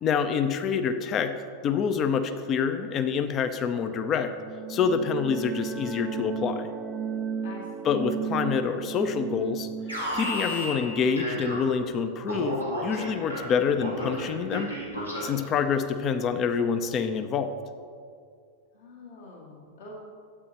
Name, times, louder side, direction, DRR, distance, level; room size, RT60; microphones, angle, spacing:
voice 1, 0.0-1.3 1.6-4.3 4.7-6.7 7.8-9.7 10.1-14.7 15.2-17.5, left 6 dB, 30° left, 9 dB, 0.6 m, -27 dB
sound 1, 4.1-12.6, right 7 dB, 20° right, 0.3 m, -35 dB
voice 2, 7.4-7.9 18.7-19.9, left 2 dB, 60° left, -5 dB, 2.2 m, -46 dB
Alarm, 9.9-11.9 12.3-15.5, equal, 85° left, 2.1 m, -33 dB
12.0 x 8.7 x 3.0 m, 2.2 s
figure-of-eight pair, 90°, 0 cm